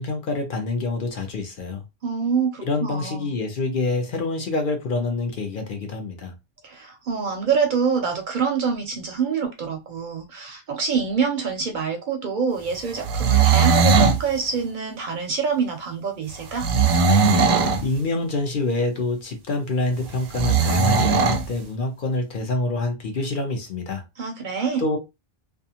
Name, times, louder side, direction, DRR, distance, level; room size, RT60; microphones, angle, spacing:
voice 1, 0.0-1.8 2.6-6.3 17.8-24.0 24.8-25.0, left 2 dB, 55° left, 0.8 m, -26 dB
voice 2, 2.0-3.3 6.6-16.7 24.2-24.9, right 6 dB, 60° right, 0.6 m, -26 dB
sound 1, 13.0-14.2 16.6-17.8 20.3-21.4, right 5 dB, 90° right, 0.8 m, -18 dB
2.4 x 2.3 x 2.7 m
omnidirectional pair, 1.1 m